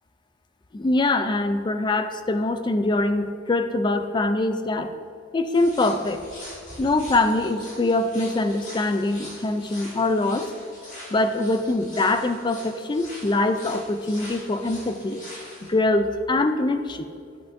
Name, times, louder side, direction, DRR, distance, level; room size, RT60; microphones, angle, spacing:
voice 1, 0.7-4.9 5.3-6.2 6.8-10.5 11.1-15.2 15.6-17.1, left 2 dB, 25° left, 9 dB, 0.3 m, -23 dB
sound 1, 5.5-15.7, left 1 dB, 40° left, 1.9 m, -43 dB
10.0 x 8.1 x 2.6 m, 2.3 s
head